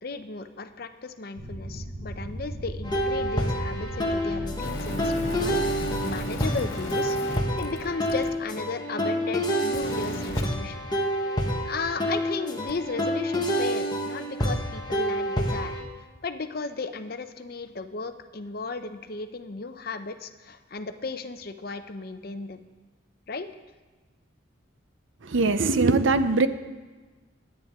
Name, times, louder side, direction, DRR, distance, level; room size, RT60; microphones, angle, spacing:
voice 1, 0.0-10.9 11.6-15.8 16.2-22.6 23.3-23.5, left 3 dB, 45° left, 9 dB, 0.6 m, -35 dB
sound 1, 1.4-6.6, equal, 90° right, 2.9 m, -36 dB
sound 2, 2.8-15.8, equal, 20° left, 1.1 m, -28 dB
sound 3, 4.6-8.3 9.7-10.4 12.7-12.8, left 1 dB, 65° left, 1.7 m, -36 dB
voice 2, 25.2-26.5, right 3 dB, 70° right, 12 dB, 0.6 m, -21 dB
22.5 x 8.8 x 3.6 m, 1.3 s
head